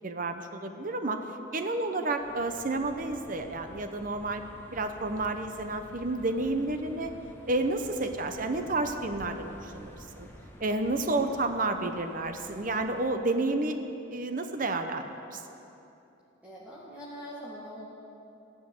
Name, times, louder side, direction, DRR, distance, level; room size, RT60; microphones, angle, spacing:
voice 1, 0.0-1.2 1.5-4.4 4.7-7.1 7.5-10.3 10.6-13.8 14.1-15.4, right 2 dB, 45° right, 7 dB, 0.8 m, -30 dB
sound 1, 2.2-13.1, equal, 10° left, 1.4 m, -50 dB
voice 2, 16.4-17.9, equal, 5° right, -8 dB, 2.0 m, -44 dB
15.5 x 11.0 x 7.8 m, 2.9 s
head